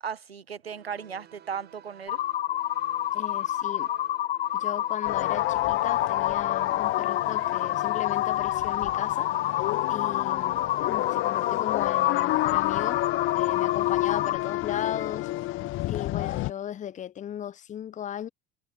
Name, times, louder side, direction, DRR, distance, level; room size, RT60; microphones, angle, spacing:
voice 1, 0.0-2.2, right 7 dB, 80° right, 1.3 m, -36 dB
sound 1, 0.6-8.0, right 10 dB, 35° right, 7.2 m, -54 dB
sound 2, 2.1-14.4, left 13 dB, 70° left, 0.7 m, -29 dB
voice 2, 3.1-3.9 4.5-9.3 9.6-13.0 13.3-15.3 15.9-18.3, left 10 dB, 25° left, 0.8 m, -36 dB
sound 3, 5.0-16.5, left 17 dB, 40° left, 1.5 m, -29 dB
figure-of-eight pair, 75°, 30 cm